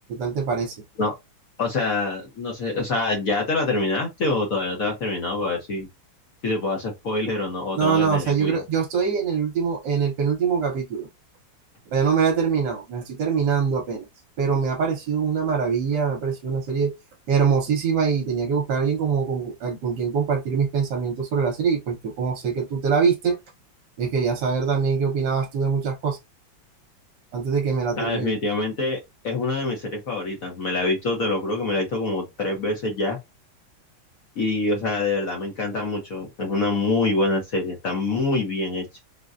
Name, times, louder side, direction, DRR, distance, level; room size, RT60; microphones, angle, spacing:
voice 1, 0.1-0.8 7.8-11.1 11.9-14.1 14.4-16.9 17.3-23.4 24.0-26.2 27.3-28.4, right 6 dB, 70° right, 1.3 m, -23 dB
voice 2, 1.6-5.9 6.4-8.6 28.0-29.0 29.2-33.2 34.4-38.9, left 2 dB, 55° left, 1.0 m, -25 dB
3.8 x 2.2 x 2.4 m
omnidirectional pair, 2.2 m